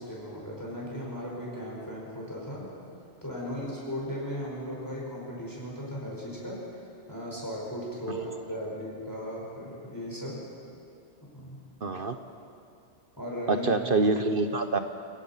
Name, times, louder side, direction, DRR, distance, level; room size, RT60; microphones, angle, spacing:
voice 1, 0.0-2.7 3.2-10.5 11.2-11.6 13.2-13.7, equal, 15° left, -4 dB, 5.1 m, -37 dB
voice 2, 11.8-12.2 13.5-14.8, right 3 dB, 50° right, 7 dB, 1.0 m, -26 dB
28.0 x 19.0 x 5.7 m, 2.5 s
omnidirectional pair, 1.3 m